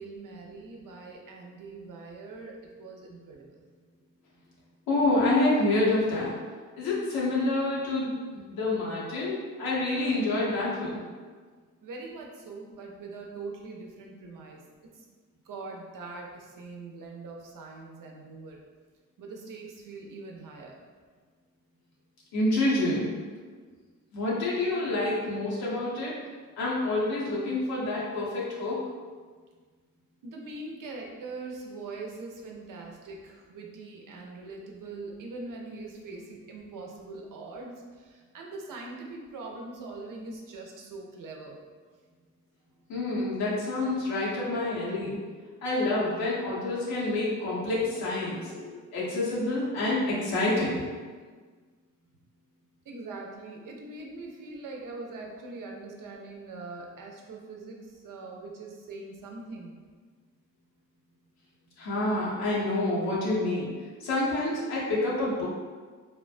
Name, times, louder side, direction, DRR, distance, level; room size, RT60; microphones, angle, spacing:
voice 1, 0.0-3.6 11.8-14.6 15.5-18.6 19.2-20.8 30.2-41.6 52.9-59.7, right 3 dB, 65° right, 0 dB, 0.6 m, -42 dB
voice 2, 4.9-6.3 6.8-11.0 22.3-23.2 24.1-26.2 26.6-28.8 42.9-45.2 45.6-50.8 61.8-63.7 64.0-65.4, left 2 dB, 90° left, -7 dB, 0.9 m, -27 dB
3.0 x 2.1 x 2.4 m, 1.5 s
supercardioid pair, 50°, 35 cm